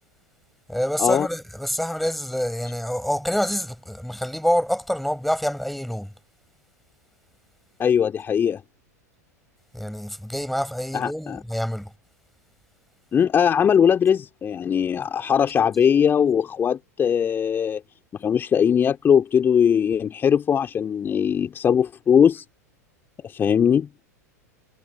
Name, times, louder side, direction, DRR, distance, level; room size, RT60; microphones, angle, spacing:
voice 1, 0.7-6.1 9.7-11.9, equal, ahead, 7.9 m, -26 dB
voice 2, 7.8-8.6 10.9-11.4 13.1-17.8 18.2-22.4 23.2-23.9, left 8 dB, 25° left, 3.5 m, -20 dB
figure-of-eight pair, 90°, 9 cm